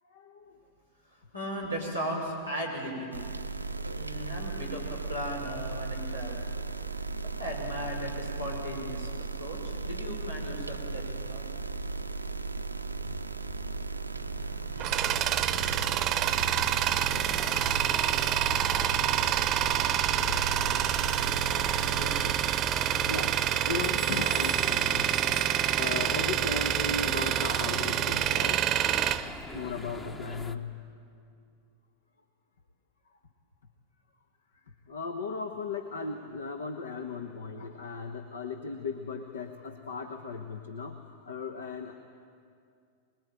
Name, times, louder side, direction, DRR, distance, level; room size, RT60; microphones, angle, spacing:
voice 1, 0.0-0.6 23.0-25.3 25.8-28.6 29.4-30.8 34.5-41.9, left 4 dB, 65° left, 6 dB, 1.2 m, -37 dB
voice 2, 1.1-3.2 3.9-6.4 7.4-9.1 9.4-11.4 21.8-22.2, equal, 90° left, -3 dB, 6.1 m, -37 dB
sound 1, 3.1-22.3, right 4 dB, 85° right, 0.7 m, -36 dB
Tools, 14.3-30.1, right 11 dB, 35° right, 0.8 m, -27 dB
sound 2, 17.2-30.6, left 2 dB, 15° left, 1.0 m, -43 dB
24.5 x 21.0 x 9.1 m, 2.3 s
figure-of-eight pair, 90°, 0 cm